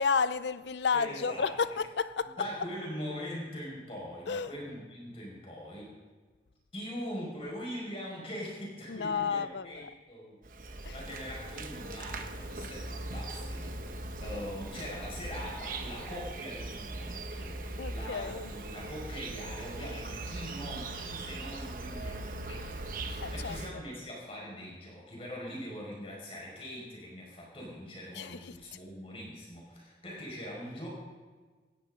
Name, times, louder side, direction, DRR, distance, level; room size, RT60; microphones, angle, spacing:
voice 1, 0.0-2.5 4.3-4.5 8.9-9.9 10.8-11.0 17.8-18.5 23.2-23.6 28.1-28.5, left 5 dB, 80° left, 0.6 m, -31 dB
voice 2, 0.9-1.5 2.4-5.9 6.7-17.6 17.9-30.9, equal, 35° left, 5.2 m, -42 dB
Insect, 10.4-23.7, right 2 dB, 50° right, 1.1 m, -40 dB
18.0 x 14.0 x 3.8 m
head